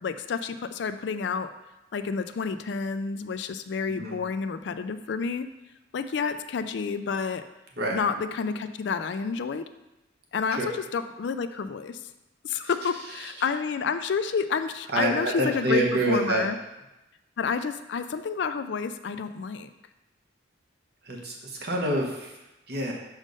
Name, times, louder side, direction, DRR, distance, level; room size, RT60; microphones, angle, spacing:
voice 1, 0.0-1.5 1.9-5.5 5.9-7.4 7.9-9.7 10.3-12.0 12.4-16.6 17.4-19.7, left 5 dB, 60° left, 10 dB, 0.3 m, -29 dB
voice 2, 14.9-16.4 21.1-21.3 21.6-22.3 22.7-22.9, right 1 dB, 55° right, -1 dB, 1.2 m, -26 dB
6.3 x 3.6 x 5.3 m, 0.98 s
head